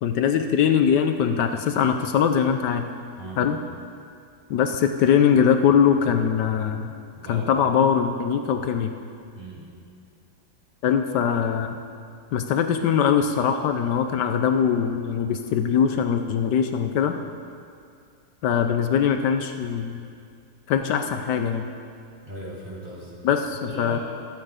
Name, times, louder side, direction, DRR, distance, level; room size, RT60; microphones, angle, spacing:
voice 1, 0.0-2.9 3.4-3.6 4.5-6.9 7.3-9.0 10.8-11.8 12.3-17.2 18.4-20.1 20.7-21.7 23.2-24.0, left 7 dB, 75° left, 7 dB, 1.3 m, -22 dB
voice 2, 3.2-3.6 7.1-7.5 9.3-9.7 22.2-23.2 23.7-24.0, right 1 dB, 30° right, -6 dB, 3.5 m, -38 dB
23.5 x 8.9 x 5.0 m, 2.3 s
omnidirectional pair, 1.9 m